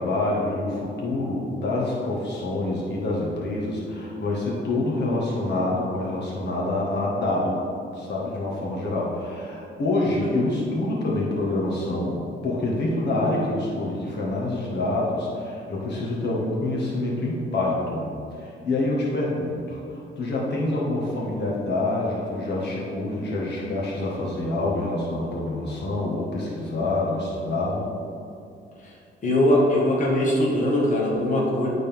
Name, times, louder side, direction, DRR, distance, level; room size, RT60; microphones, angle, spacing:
voice 1, 0.0-7.6 7.9-27.9, left 2 dB, 60° left, -4 dB, 1.6 m, -26 dB
voice 2, 29.2-31.7, left 1 dB, 40° left, -4 dB, 1.5 m, -21 dB
11.5 x 4.1 x 3.5 m, 2.5 s
cardioid pair, 90°, 20 cm